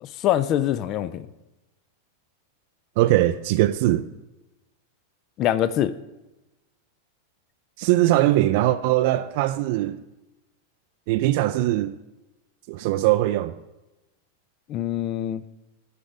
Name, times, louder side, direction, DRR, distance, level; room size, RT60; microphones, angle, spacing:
voice 1, 0.0-1.3 5.4-6.0 14.7-15.4, left 11 dB, 35° left, 0.3 m, -24 dB
voice 2, 3.0-4.0 7.8-10.0 11.1-12.0 12.7-13.5, right 15 dB, 50° right, 0.3 m, -21 dB
9.5 x 5.1 x 6.8 m
figure-of-eight pair, 90°, 0 cm